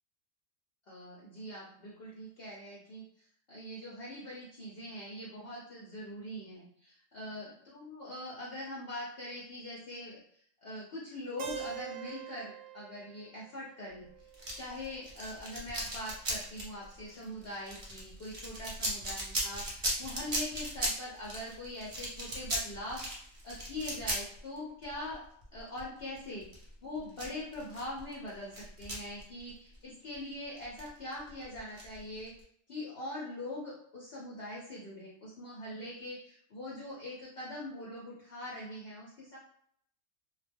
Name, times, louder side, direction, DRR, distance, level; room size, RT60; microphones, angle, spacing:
voice 1, 0.9-3.0 3.5-14.1 14.5-25.2 25.5-32.3 32.7-39.4, left 1 dB, 55° left, -6 dB, 0.9 m, -42 dB
Keyboard (musical), 11.4-15.3, right 11 dB, 70° right, 0.8 m, -46 dB
sound 1, 14.3-29.8 30.0-30.2 30.6-32.4, right 1 dB, 35° right, 0.7 m, -38 dB
2.2 x 2.2 x 3.4 m, 0.66 s
omnidirectional pair, 1.3 m